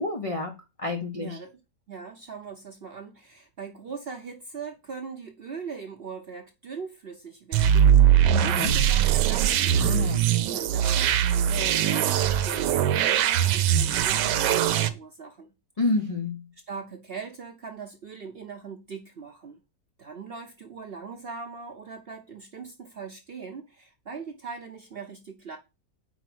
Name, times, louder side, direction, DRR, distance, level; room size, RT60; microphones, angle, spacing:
voice 1, 0.0-1.4 8.3-8.8 9.8-10.3 15.8-16.4, left 3 dB, 60° left, 0.3 m, -29 dB
voice 2, 1.1-1.6 1.9-9.8 10.5-15.5 16.7-19.6 20.0-25.6, right 5 dB, 55° right, 0.6 m, -40 dB
sound 1, 7.5-14.9, right 10 dB, 80° right, 1.2 m, -21 dB
4.6 x 4.6 x 6.0 m
omnidirectional pair, 1.9 m